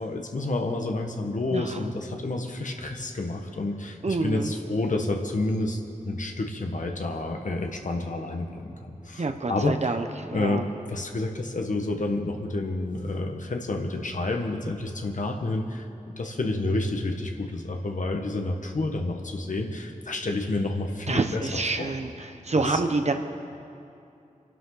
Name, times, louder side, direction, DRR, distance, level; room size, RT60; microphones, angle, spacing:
voice 1, 0.0-10.0 10.3-15.8 16.2-21.9 22.6-22.8, left 2 dB, 70° left, 3 dB, 1.5 m, -29 dB
voice 2, 4.0-4.5 9.2-10.0 10.3-10.6 21.1-22.1 22.5-23.1, right 3 dB, 55° right, 6 dB, 1.2 m, -26 dB
25.5 x 11.5 x 4.0 m, 2.6 s
wide cardioid pair, 55°, 14 cm